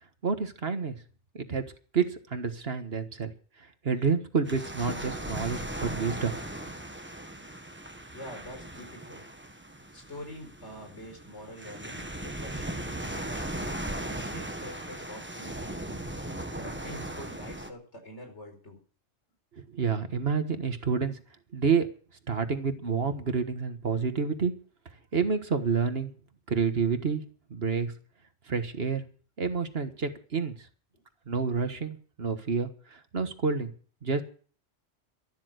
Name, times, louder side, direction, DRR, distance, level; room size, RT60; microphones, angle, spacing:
voice 1, 0.2-0.9 1.3-1.6 1.9-3.3 3.8-6.4 19.6-21.2 21.5-21.9 22.3-24.5 25.1-26.1 26.5-27.2 27.5-27.9 28.5-29.0 29.4-30.5 31.3-33.7 34.0-34.2, right 5 dB, 60° right, 8 dB, 1.7 m, -29 dB
sound 1, 4.5-17.7, right 1 dB, 10° right, 1.2 m, -38 dB
voice 2, 8.1-9.2 9.9-13.6 14.1-16.0 16.5-18.8 30.9-31.0, left 1 dB, 75° left, 4 dB, 4.8 m, -46 dB
13.0 x 12.5 x 6.4 m, 0.43 s
omnidirectional pair, 1.2 m